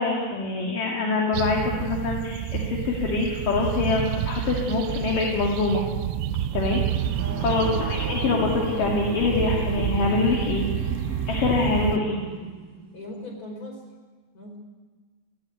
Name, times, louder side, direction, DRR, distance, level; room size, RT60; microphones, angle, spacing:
voice 1, 0.0-5.8 6.5-10.7 11.3-12.2, left 3 dB, 50° left, 0 dB, 3.5 m, -25 dB
sound 1, 1.3-12.0, right 11 dB, 90° right, 3.2 m, -29 dB
sound 2, 6.2-13.2, right 2 dB, 35° right, 1.4 m, -35 dB
voice 2, 7.2-7.5 12.9-13.7 14.3-14.6, left 1 dB, 20° left, 0 dB, 4.6 m, -38 dB
18.5 x 16.0 x 9.3 m, 1.4 s
omnidirectional pair, 5.4 m